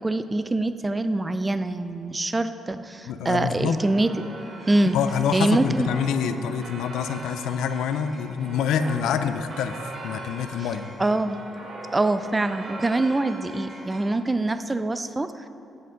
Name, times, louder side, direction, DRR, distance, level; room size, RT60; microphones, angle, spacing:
voice 1, 0.0-4.1 4.7-5.0 5.3-5.9 11.0-11.4 11.9-15.5, right 2 dB, 20° right, 11 dB, 0.3 m, -24 dB
voice 2, 3.1-3.8 4.9-10.9, left 7 dB, 85° left, 10 dB, 0.3 m, -26 dB
sound 1, 3.8-14.1, right 2 dB, 45° right, 1.0 m, -40 dB
7.8 x 7.4 x 3.8 m, 2.6 s
cardioid pair, 90°, 0 cm